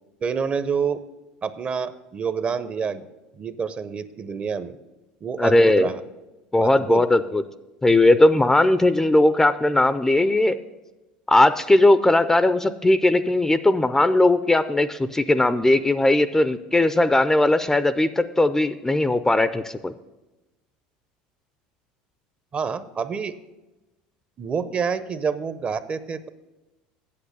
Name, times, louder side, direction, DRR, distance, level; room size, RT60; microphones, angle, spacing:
voice 1, 0.2-1.0 1.4-3.0 3.3-4.7 5.2-6.0 6.6-7.0 22.5-23.3 24.4-26.3, right 6 dB, 30° right, 13 dB, 0.6 m, -27 dB
voice 2, 5.4-5.9 6.5-7.4 7.8-10.6 11.3-19.9, left 2 dB, 10° left, 13 dB, 0.4 m, -18 dB
8.6 x 7.7 x 6.7 m, 1.0 s
supercardioid pair, 95°, 4 cm